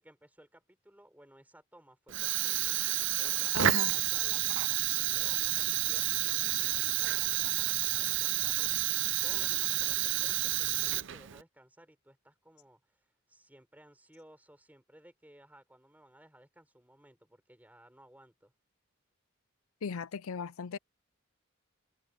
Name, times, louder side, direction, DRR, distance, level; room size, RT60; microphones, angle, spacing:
voice 1, 0.0-2.8 3.1-18.5, right 1 dB, 10° right, 5.2 m, -58 dB
Fire, 2.1-11.4, right 14 dB, 60° right, 0.6 m, -30 dB
voice 2, 3.5-4.0 19.8-20.8, left 6 dB, 80° left, 0.5 m, -37 dB
head